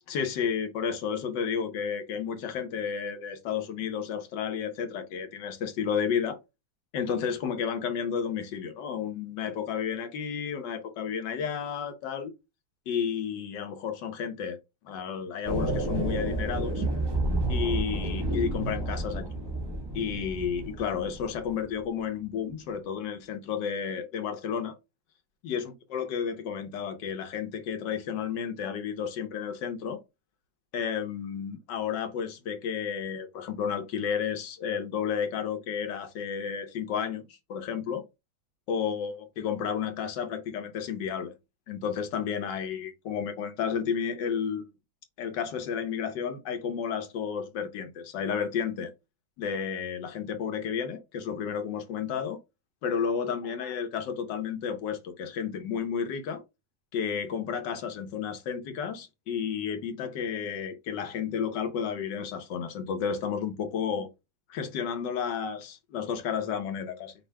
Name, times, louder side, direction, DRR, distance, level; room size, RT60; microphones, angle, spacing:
voice 1, 0.1-6.4 6.9-12.3 12.9-14.6 14.8-16.8 17.5-19.3 19.9-24.7 25.4-30.0 30.7-38.0 38.7-41.3 41.7-44.7 45.2-48.9 49.4-52.4 52.8-56.4 56.9-64.1 64.5-67.1, left 7 dB, 85° left, 1.6 m, -32 dB
sound 1, 15.4-21.6, right 2 dB, 20° right, 0.8 m, -30 dB
5.4 x 2.7 x 3.3 m
omnidirectional pair, 1.8 m